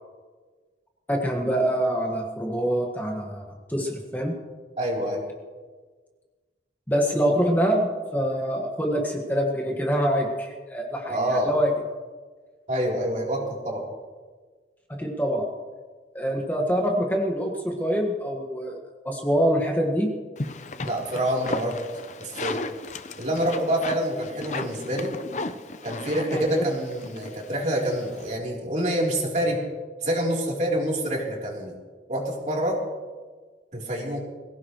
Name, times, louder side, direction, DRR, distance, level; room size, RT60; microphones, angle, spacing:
voice 1, 1.1-4.3 6.9-11.7 15.0-15.5 16.1-18.8 19.0-20.1 26.3-26.7, equal, 10° left, -1 dB, 1.7 m, -25 dB
voice 2, 4.8-5.2 11.1-11.5 12.7-13.8 20.8-21.8 22.2-22.6 23.2-25.1 25.8-29.6 30.0-31.7 32.1-32.8 33.7-34.2, right 1 dB, 40° right, -3 dB, 3.6 m, -27 dB
sound 1, 20.4-28.4, left 3 dB, 40° left, 0.7 m, -36 dB
23.0 x 16.5 x 3.2 m, 1.4 s
head